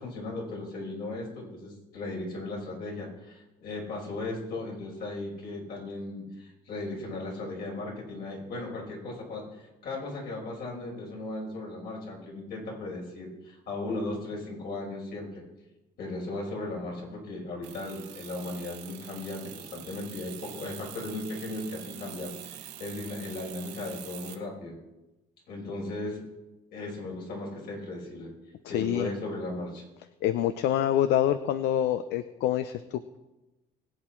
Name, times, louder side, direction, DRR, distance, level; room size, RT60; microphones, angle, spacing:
voice 1, 0.0-15.4 16.0-24.8 25.5-26.2 26.7-28.3 28.7-29.8, left 2 dB, 65° left, -2 dB, 5.5 m, -37 dB
sound 1, 17.6-24.4, right 11 dB, 80° right, 1.4 m, -45 dB
voice 2, 28.6-29.1 30.2-33.2, left 11 dB, 85° left, 12 dB, 0.6 m, -26 dB
21.0 x 8.3 x 4.5 m, 1.0 s
cardioid pair, 110°, 17 cm